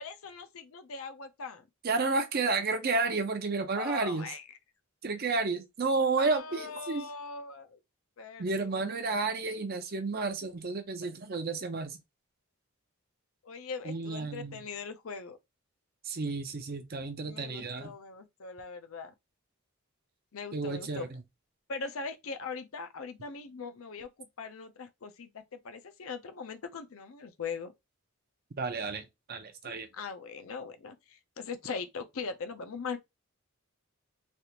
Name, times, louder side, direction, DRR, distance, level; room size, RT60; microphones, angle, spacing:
voice 1, 0.0-1.6 3.8-4.4 6.2-7.8 8.2-9.3 13.4-15.4 17.2-19.1 20.3-21.1 21.7-27.7 29.7-33.0, left 4 dB, 70° left, 0.6 m, -41 dB
voice 2, 1.8-4.3 5.0-7.1 8.4-12.0 13.8-14.6 16.0-17.9 20.5-21.2 28.6-29.9, right 3 dB, 45° right, 0.6 m, -31 dB
3.3 x 2.4 x 2.8 m
head